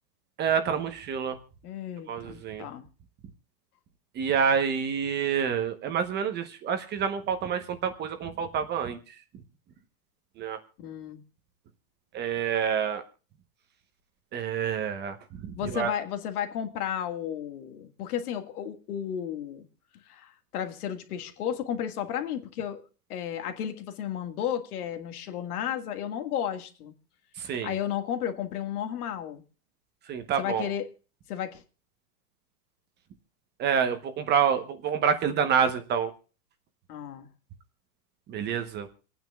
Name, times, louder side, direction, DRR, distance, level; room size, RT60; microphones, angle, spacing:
voice 1, 0.4-1.4 2.1-2.7 4.1-9.1 10.4-10.6 12.1-13.0 14.3-15.2 15.6-15.9 27.4-27.8 30.1-30.7 33.6-36.1 38.3-38.9, right 7 dB, 20° right, 1.0 m, -27 dB
voice 2, 1.6-2.9 10.8-11.2 15.6-19.7 20.1-26.9 27.6-29.4 30.4-30.9 31.3-31.6 36.9-37.3, left 9 dB, 60° left, 1.9 m, -33 dB
27.5 x 9.4 x 2.3 m
hypercardioid pair, 140°, 49 cm